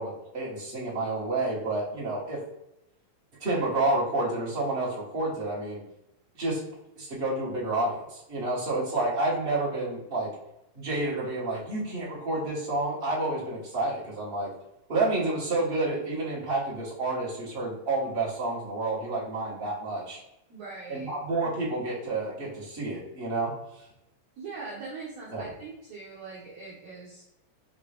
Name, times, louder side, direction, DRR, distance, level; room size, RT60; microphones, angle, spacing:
voice 1, 0.0-2.4 3.4-5.8 6.4-6.6 7.0-10.3 10.7-14.5 14.9-20.2 20.9-23.5 25.3-25.5, right 2 dB, 50° right, -7 dB, 0.6 m, -29 dB
voice 2, 20.5-21.1 24.4-27.2, right 4 dB, 70° right, -5 dB, 1.6 m, -41 dB
5.1 x 2.8 x 3.3 m, 0.83 s
omnidirectional pair, 3.8 m